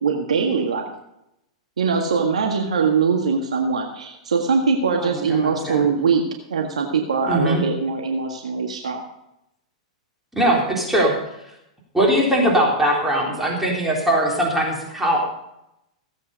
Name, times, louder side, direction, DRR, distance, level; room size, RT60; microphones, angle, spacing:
voice 1, 0.0-0.9 1.8-6.2 6.5-9.1, right 5 dB, 75° right, 2 dB, 1.7 m, -22 dB
voice 2, 5.0-5.9 7.3-7.6 10.3-11.2 11.9-15.3, right 1 dB, 5° right, -3 dB, 3.6 m, -20 dB
16.5 x 8.5 x 5.3 m, 0.83 s
hypercardioid pair, 105°, 3 cm